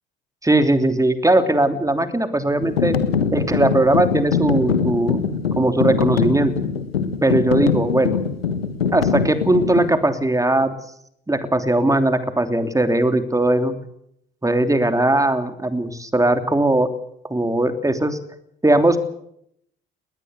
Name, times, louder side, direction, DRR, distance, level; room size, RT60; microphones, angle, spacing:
voice 1, 0.4-2.9 3.3-5.2 5.5-6.5 7.2-8.2 8.9-10.7 11.3-13.7 14.4-16.9 17.3-18.2 18.6-19.0, right 1 dB, 10° right, 8 dB, 3.1 m, -19 dB
sound 1, 2.6-9.9, left 6 dB, 90° left, 1.5 m, -23 dB
20.5 x 18.5 x 8.2 m, 0.74 s
hypercardioid pair, 55°, 29 cm